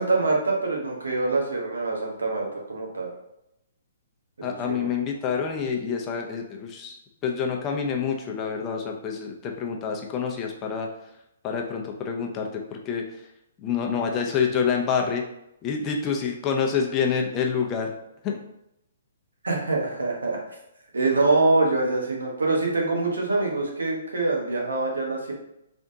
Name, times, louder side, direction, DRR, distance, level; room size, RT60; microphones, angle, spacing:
voice 1, 0.0-3.1 4.4-4.9 19.4-20.6 20.9-25.3, right 3 dB, 90° right, -1 dB, 1.1 m, -25 dB
voice 2, 4.4-10.9 11.4-13.0 13.6-15.2 15.6-17.9 18.2-18.4, left 6 dB, 25° left, 1 dB, 0.6 m, -27 dB
3.5 x 3.5 x 2.7 m, 0.83 s
hypercardioid pair, 140°, 0 cm